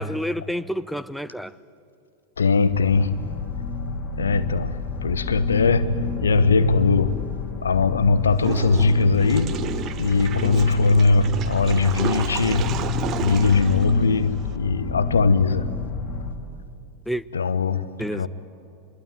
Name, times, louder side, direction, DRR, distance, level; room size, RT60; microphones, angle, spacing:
voice 1, 0.0-1.6 17.1-17.3 18.0-18.3, equal, ahead, 0.5 m, -29 dB
voice 2, 2.4-3.2 4.2-7.2 7.6-9.6 10.0-12.8 13.2-15.7 17.3-17.9 18.1-18.3, left 4 dB, 70° left, 1.0 m, -20 dB
Viral Stabbed Iris, 2.6-16.3, left 5 dB, 35° left, 2.5 m, -30 dB
Water / Toilet flush, 8.4-14.6, right 9 dB, 30° right, 1.0 m, -33 dB
25.0 x 21.5 x 9.1 m
figure-of-eight pair, 90°, 0 cm